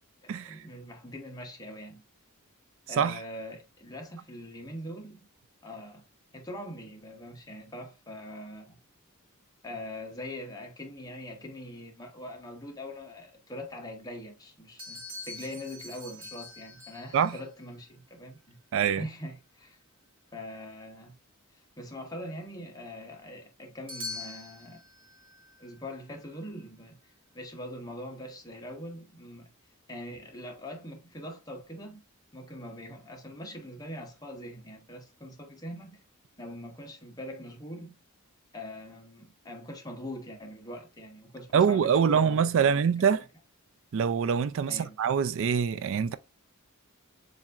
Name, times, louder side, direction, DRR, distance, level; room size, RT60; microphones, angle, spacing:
voice 1, 0.2-2.0 2.9-5.3 5.6-6.0 6.3-8.8 9.6-18.6 19.0-19.8 20.3-21.2 21.5-24.8 25.6-29.5 29.9-32.0 32.3-36.0 36.4-37.9 38.5-42.8 44.7-45.0, left 1 dB, 15° left, 1.0 m, -42 dB
sound 1, 14.8-17.4 23.9-26.6, left 2 dB, 25° right, 1.6 m, -44 dB
voice 2, 18.7-19.0 41.5-43.2 43.9-46.1, right 7 dB, 60° right, 0.3 m, -24 dB
7.1 x 2.6 x 2.4 m
head